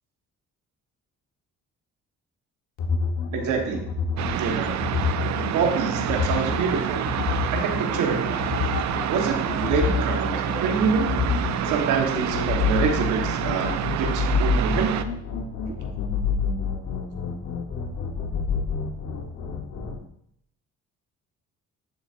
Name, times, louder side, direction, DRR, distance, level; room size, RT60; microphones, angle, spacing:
sound 1, 2.8-20.0, left 5 dB, 70° left, 1.0 m, -28 dB
voice 1, 3.3-3.8 4.4-4.8 5.5-7.1 7.5-8.5 9.1-11.1 11.7-15.0 15.7-15.8, right 5 dB, 90° right, 2 dB, 1.3 m, -26 dB
sound 2, 4.2-15.0, right 11 dB, 65° right, 0.5 m, -28 dB
11.0 x 4.1 x 2.5 m, 0.70 s
cardioid pair, 90°, 30 cm